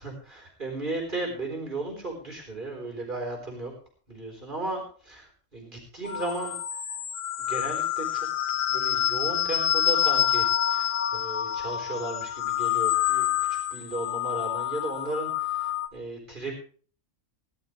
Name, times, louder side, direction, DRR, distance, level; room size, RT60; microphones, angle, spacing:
voice 1, 0.0-3.7 4.1-6.6 7.5-8.3 8.7-16.5, right 2 dB, 35° right, 0 dB, 4.1 m, -35 dB
sound 1, 6.0-15.9, left 11 dB, 60° left, 1.7 m, -27 dB
19.5 x 12.0 x 3.3 m, 0.43 s
omnidirectional pair, 1.5 m